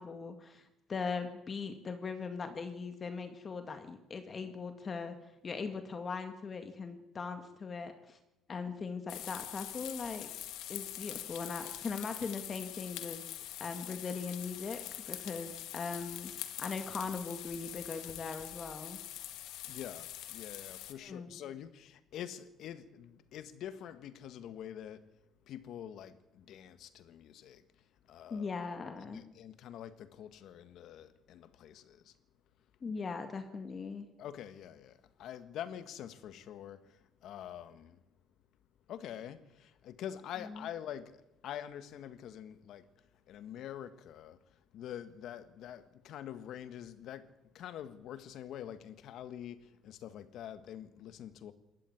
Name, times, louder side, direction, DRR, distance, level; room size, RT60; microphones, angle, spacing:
voice 1, 0.0-5.2 5.4-8.2 8.5-10.3 10.7-13.2 13.6-14.8 15.1-19.0 21.0-21.4 28.3-29.2 32.8-34.1 40.4-40.6, left 5 dB, 35° left, 2.0 m, -40 dB
sound 1, 9.1-20.9, left 13 dB, 85° left, 1.9 m, -44 dB
voice 2, 19.6-25.0 25.5-27.6 28.1-28.5 29.0-32.1 34.2-38.0 38.9-42.9 43.3-44.4 44.7-51.5, left 10 dB, 65° left, 1.6 m, -46 dB
20.0 x 13.5 x 9.8 m
cardioid pair, 110°, 0 cm